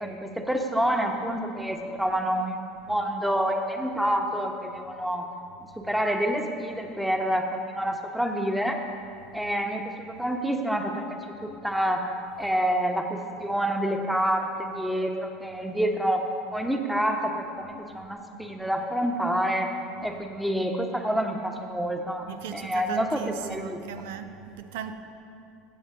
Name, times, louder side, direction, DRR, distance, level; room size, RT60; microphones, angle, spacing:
voice 1, 0.0-5.2 5.8-8.8 9.3-11.0 11.4-12.0 12.4-16.2 16.5-19.7 20.0-22.2 22.5-23.8, equal, ahead, 1.1 m, -28 dB
voice 2, 22.2-24.9, right 8 dB, 75° right, 0.6 m, -37 dB
15.0 x 7.9 x 3.7 m
hypercardioid pair, 80°, 0 cm